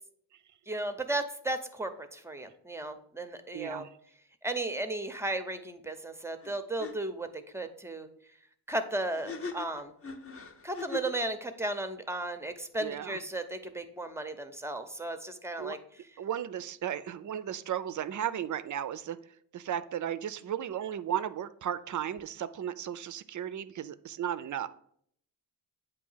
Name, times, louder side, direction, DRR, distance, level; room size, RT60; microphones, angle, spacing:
voice 1, 0.7-3.8 4.4-7.3 7.5-8.1 8.7-9.9 10.6-15.8, right 2 dB, 5° right, 8 dB, 0.6 m, -35 dB
voice 2, 3.5-3.9 12.8-13.2 15.6-15.8 16.2-19.2 19.5-24.7, right 10 dB, 45° right, 14 dB, 0.5 m, -35 dB
sound 1, 6.4-6.5 6.8-6.9 9.1-11.2, left 4 dB, 30° left, 0.7 m, -40 dB
8.2 x 2.8 x 5.5 m, 0.66 s
cardioid pair, 85°, 42 cm